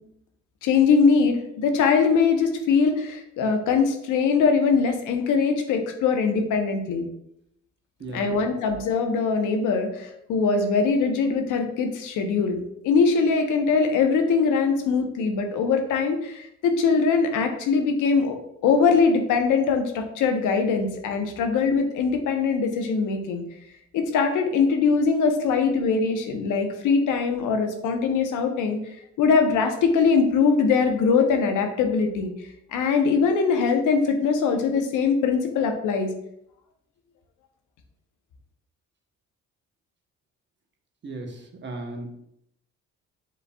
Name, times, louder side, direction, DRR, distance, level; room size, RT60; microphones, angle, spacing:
voice 1, 0.6-7.1 8.1-12.6 12.8-18.4 18.6-23.4 23.9-28.8 29.2-32.3 32.7-36.1, left 5 dB, 85° left, 5 dB, 0.8 m, -22 dB
voice 2, 8.0-8.5 41.0-42.2, right 2 dB, 35° right, 2 dB, 0.9 m, -36 dB
5.1 x 3.9 x 2.3 m, 0.76 s
cardioid pair, 90°, 30 cm